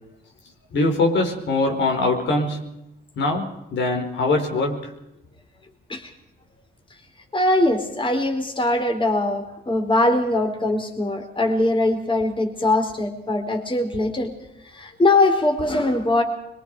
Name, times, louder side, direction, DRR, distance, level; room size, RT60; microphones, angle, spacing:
voice 1, 0.7-2.7 3.2-4.9, left 2 dB, 65° left, 2 dB, 5.0 m, -22 dB
voice 2, 7.3-14.3 14.7-16.2, left 2 dB, 25° left, 3 dB, 4.5 m, -21 dB
25.0 x 23.0 x 5.0 m, 0.86 s
cardioid pair, 90°, 20 cm